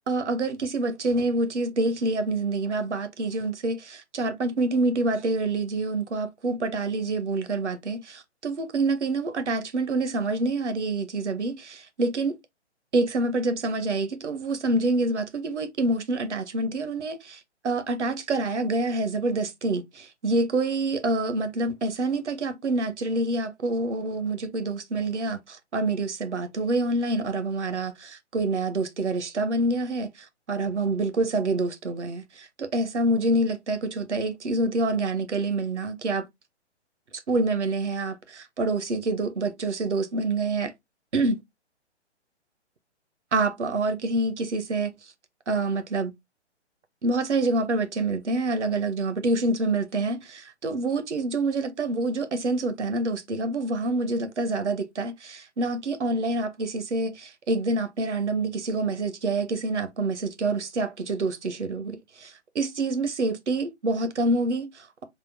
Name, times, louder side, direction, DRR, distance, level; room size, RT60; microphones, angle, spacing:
voice 1, 0.1-12.4 12.9-32.2 32.6-36.3 37.1-40.7 41.1-41.4 43.3-44.9 45.5-46.1 47.0-65.0, right 2 dB, 75° right, 0.8 m, -27 dB
3.5 x 2.1 x 3.3 m
figure-of-eight pair, 135°, 35 cm